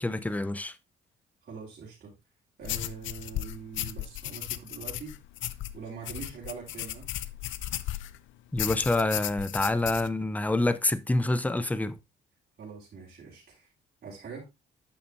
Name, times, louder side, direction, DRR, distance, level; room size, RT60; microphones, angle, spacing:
voice 1, 0.0-0.7 8.5-12.0, left 2 dB, 10° left, 0.5 m, -27 dB
voice 2, 1.4-2.1 2.6-5.2 5.7-7.1 12.6-13.7 14.0-14.5, right 6 dB, 50° right, 3.1 m, -43 dB
sound 1, 2.6-8.2 8.6-10.1, left 13 dB, 75° left, 0.5 m, -35 dB
8.6 x 6.6 x 2.6 m
cardioid pair, 90°, 20 cm